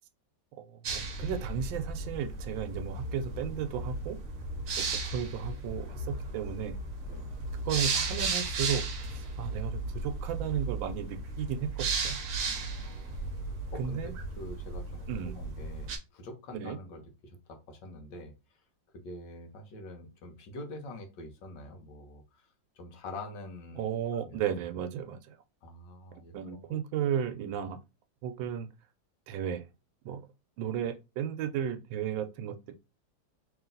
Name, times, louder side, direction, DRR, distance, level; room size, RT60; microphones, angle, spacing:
voice 1, 0.6-4.2 4.8-6.8 7.6-8.8 9.1-12.2 13.8-14.1 15.1-15.4 16.5-16.8 23.8-25.4 26.3-27.8 28.2-28.7 29.3-29.7 30.0-30.2 30.6-32.7, right 8 dB, 80° right, 1.3 m, -34 dB
sound 1, 0.8-16.0, right 3 dB, 55° right, 1.0 m, -35 dB
voice 2, 12.5-13.3 13.7-18.3 18.9-22.4 22.8-24.4 25.6-26.8, left 2 dB, 70° left, 1.4 m, -46 dB
3.1 x 3.0 x 3.8 m
omnidirectional pair, 2.1 m